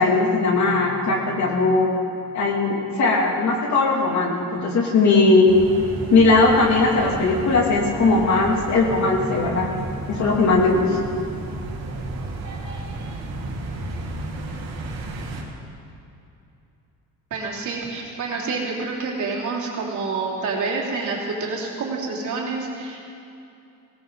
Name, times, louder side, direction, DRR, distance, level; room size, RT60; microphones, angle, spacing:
voice 1, 0.0-1.9 2.3-5.5 6.1-9.7 10.1-11.0, left 3 dB, 55° left, -1 dB, 2.6 m, -19 dB
sound 1, 5.5-15.4, right 2 dB, 85° right, 2.7 m, -33 dB
voice 2, 17.3-23.0, right 4 dB, 60° right, -3 dB, 3.1 m, -28 dB
19.0 x 17.5 x 4.0 m, 2.7 s
cardioid pair, 140°, 34 cm